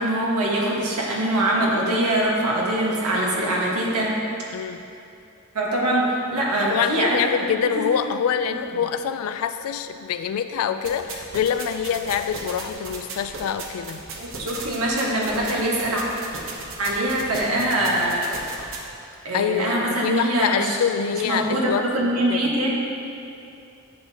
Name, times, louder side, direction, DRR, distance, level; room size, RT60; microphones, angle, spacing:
voice 1, 0.0-4.1 5.5-7.8 14.2-16.0 16.8-18.3 19.2-20.8 21.1-22.7, right 1 dB, 85° right, -3 dB, 1.5 m, -23 dB
voice 2, 6.6-14.0 19.3-22.5, left 8 dB, 70° left, 10 dB, 0.3 m, -25 dB
sound 1, 10.8-18.8, right 3 dB, 60° right, 1.0 m, -37 dB
10.0 x 7.2 x 2.8 m, 2.6 s
head